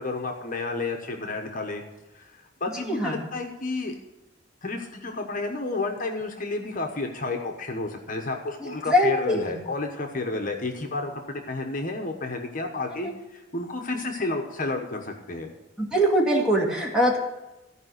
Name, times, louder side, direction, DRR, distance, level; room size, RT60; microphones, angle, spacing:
voice 1, 0.0-1.8 2.1-3.9 4.6-15.5, left 3 dB, 45° left, 3 dB, 1.1 m, -31 dB
voice 2, 8.6-9.6 12.9-13.1 15.8-17.2, equal, 5° right, -2 dB, 2.1 m, -23 dB
14.0 x 5.0 x 7.9 m, 1.0 s
head